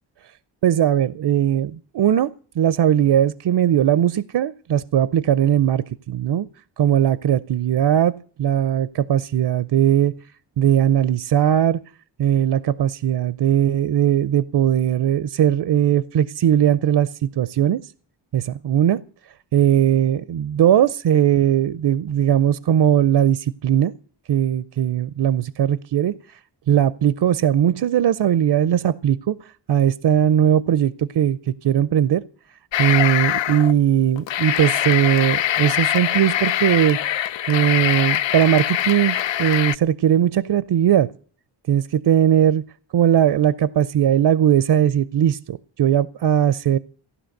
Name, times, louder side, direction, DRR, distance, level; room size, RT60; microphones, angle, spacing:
voice 1, 0.6-6.5 6.8-10.1 10.6-11.8 12.2-17.9 18.3-19.0 19.5-23.9 24.3-26.4 26.7-32.2 32.8-37.0 37.5-41.1 41.7-42.6 42.9-46.8, right 10 dB, 60° right, 0.6 m, -19 dB
sound 1, 32.7-33.7 34.2-39.8, left 12 dB, 75° left, 0.6 m, -23 dB
15.5 x 11.0 x 6.5 m
wide cardioid pair, 85°, 45 cm